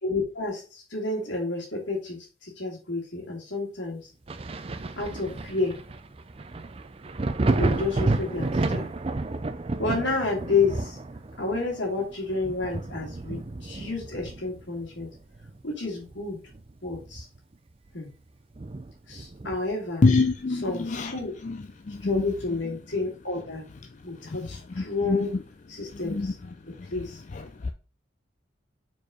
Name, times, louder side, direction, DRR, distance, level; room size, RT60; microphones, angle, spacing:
voice 1, 0.0-4.1 5.0-5.8 7.6-8.9 9.8-11.0 11.4-15.1 15.6-16.4 16.8-17.3 17.9-18.1 19.1-20.1 20.5-21.4 22.0-23.7 24.0-25.4 25.7-26.3 26.9-27.2, left 3 dB, 70° left, 2.6 m, -30 dB
Thunder, 4.3-15.6 16.0-17.5 17.9-18.0 18.5-19.8 21.3-21.4, right 2 dB, 30° right, 0.4 m, -31 dB
voice 2, 20.0-21.1 21.4-21.6 21.9-22.2 24.8-24.9 25.1-25.2 26.1-26.3 27.6-27.7, left 3 dB, 40° left, 0.4 m, -24 dB
4.6 x 4.6 x 4.9 m
head